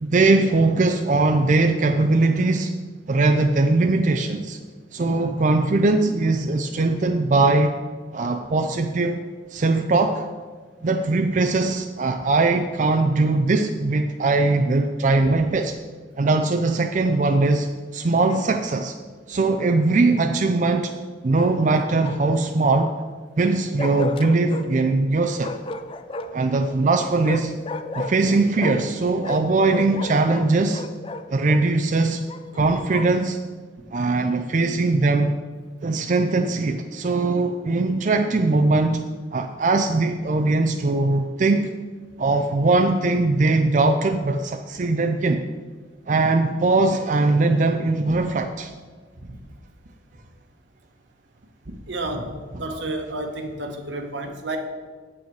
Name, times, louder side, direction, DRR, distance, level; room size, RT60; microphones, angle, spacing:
voice 1, 0.0-2.7 3.1-4.6 4.9-7.7 8.1-9.2 9.5-10.2 10.8-15.7 16.2-18.9 19.3-20.9 21.2-22.9 23.4-25.5 26.3-27.5 27.9-30.8 31.3-32.3 32.5-33.4 33.9-35.4 35.8-39.0 39.3-41.7 42.2-45.4 46.1-48.7, right 3 dB, 45° right, 5 dB, 0.4 m, -20 dB
Bark, 18.2-18.9 21.3-22.4 23.8-24.7 25.4-26.5 27.2-28.9 29.2-31.6 32.3-33.2, left 3 dB, 30° left, 0.4 m, -34 dB
voice 2, 51.9-54.6, right 2 dB, 80° right, 4 dB, 1.2 m, -30 dB
8.7 x 8.2 x 4.7 m, 1.5 s
head